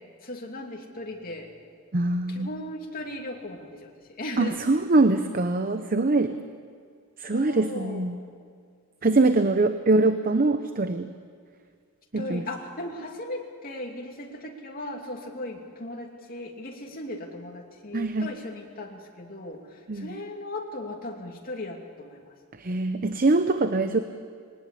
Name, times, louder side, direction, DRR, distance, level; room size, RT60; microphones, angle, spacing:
voice 1, 0.2-1.5 2.3-4.6 7.3-8.0 9.1-9.7 12.2-22.3, left 1 dB, 45° left, 1 dB, 2.7 m, -37 dB
voice 2, 1.9-2.5 4.4-6.4 7.2-8.2 9.0-11.1 12.1-12.4 17.9-18.3 19.9-20.1 22.6-24.0, right 2 dB, 45° right, 9 dB, 0.8 m, -23 dB
21.0 x 19.0 x 8.5 m, 2.1 s
head